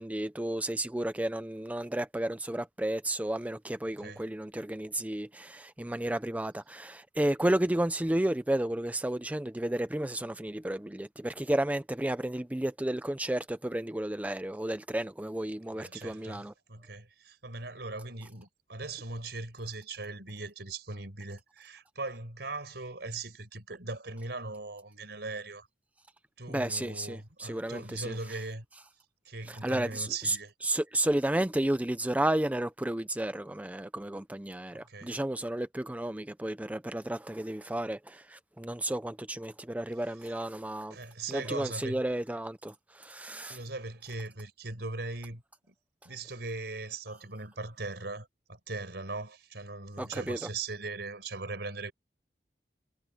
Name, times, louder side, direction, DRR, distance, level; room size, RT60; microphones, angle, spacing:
voice 1, 0.0-16.5 26.5-28.2 29.5-30.4 30.6-41.0 41.3-43.6 50.0-50.4, right 1 dB, 10° right, 0.5 m, -32 dB
voice 2, 3.8-4.3 15.7-25.7 26.4-28.7 29.3-30.5 34.7-35.2 40.2-40.3 40.9-42.0 43.5-45.4 45.7-45.8 46.0-51.9, right 3 dB, 70° right, 5.3 m, -40 dB
head